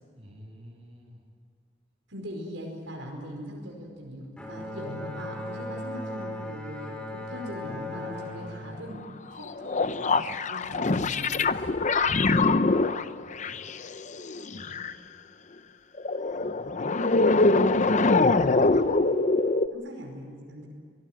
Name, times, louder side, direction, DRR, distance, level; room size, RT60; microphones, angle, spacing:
voice 1, 0.1-1.2 12.3-13.6 14.2-14.8 17.2-19.1, equal, 30° right, -2 dB, 7.5 m, -50 dB
voice 2, 2.1-9.0 9.3-11.7 19.7-20.7, equal, 80° right, 0 dB, 5.0 m, -41 dB
Bowed string instrument, 4.4-9.8, left 1 dB, 5° left, 3.7 m, -38 dB
sound 1, 9.4-14.9 16.0-19.7, left 3 dB, 40° left, 0.7 m, -24 dB
25.0 x 19.0 x 9.2 m, 2.2 s
head